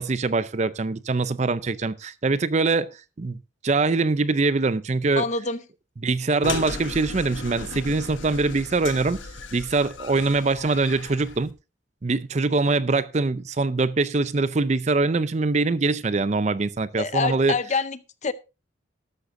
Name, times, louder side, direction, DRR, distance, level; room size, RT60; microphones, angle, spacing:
voice 1, 0.0-2.9 3.2-3.4 3.6-5.3 6.0-9.2 9.5-11.5 12.0-17.6, right 3 dB, 35° right, 0.5 m, -23 dB
voice 2, 5.2-5.6 17.0-18.3, left 4 dB, 35° left, 0.6 m, -26 dB
sound 1, 6.4-11.5, left 3 dB, 75° left, 1.3 m, -36 dB
13.5 x 12.5 x 2.6 m
head